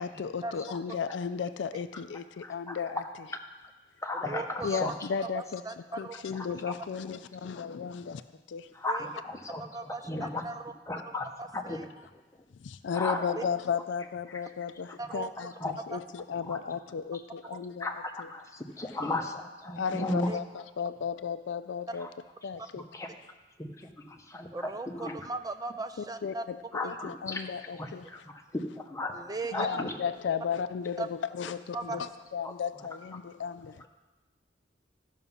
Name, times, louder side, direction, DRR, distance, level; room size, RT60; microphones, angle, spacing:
voice 1, 0.0-3.0 4.6-5.6 6.0-8.2 8.5-8.7 12.6-17.9 18.2-18.3 19.8-22.1 22.4-22.9 26.2-28.2 29.5-33.9, left 6 dB, 70° left, 12 dB, 0.4 m, -34 dB
voice 2, 2.4-2.9 4.0-4.9 8.7-10.4 10.9-11.3 11.5-11.8 12.9-13.4 15.6-15.7 16.5-16.6 17.8-20.3 22.9-23.1 23.6-24.5 24.9-25.2 26.7-27.5 27.7-29.9 32.4-32.5, left 2 dB, 15° left, 3 dB, 0.9 m, -35 dB
voice 3, 4.1-4.8 5.3-6.1 8.9-9.1 9.6-10.7 11.1-11.9 13.4-13.5 15.0-15.3 15.9-16.0 17.5-17.6 20.3-20.4 21.9-22.0 24.5-26.4 26.8-27.0 29.1-29.8 31.0-31.1 31.7-32.0, right 3 dB, 20° right, 9 dB, 0.6 m, -38 dB
13.0 x 5.9 x 5.5 m, 1.2 s
head